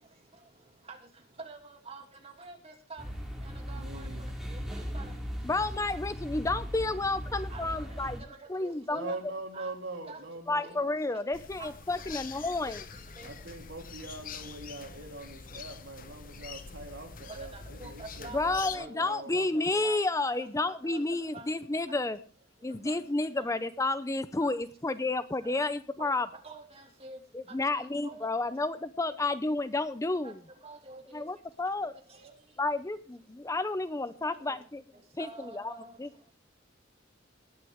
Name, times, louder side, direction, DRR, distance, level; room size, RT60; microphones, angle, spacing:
voice 1, 0.9-3.0 3.4-5.1 7.5-9.2 9.5-9.7 10.1-10.4 10.6-10.8 11.1-11.2 11.6-11.7 12.0-12.2 12.7-12.8 13.2-13.3 14.0-14.3 17.3-18.4 18.8-20.0 20.4-21.0 21.3-21.5 22.1-22.2 22.8-23.0 23.4-23.5 24.4-24.5 25.4-25.6 26.0-27.2 27.5-28.3 29.2-29.3 30.2-30.3 30.6-31.3 31.8-32.3 34.2-34.6 35.2-36.0, right 3 dB, 35° right, 2 dB, 2.5 m, -48 dB
sound 1, 3.0-8.2, equal, ahead, 3.1 m, -38 dB
voice 2, 3.6-4.3 8.9-10.8 13.2-19.9, right 2 dB, 75° right, 2 dB, 3.3 m, -43 dB
voice 3, 5.4-8.2 8.5-9.1 10.5-12.8 18.3-22.2 22.6-26.3 27.3-30.3 31.1-31.9 32.6-34.8 35.2-36.1, left 2 dB, 15° left, 13 dB, 0.5 m, -31 dB
sound 2, 11.3-18.8, left 5 dB, 50° left, 1.0 m, -44 dB
19.5 x 9.6 x 3.5 m, 0.36 s
head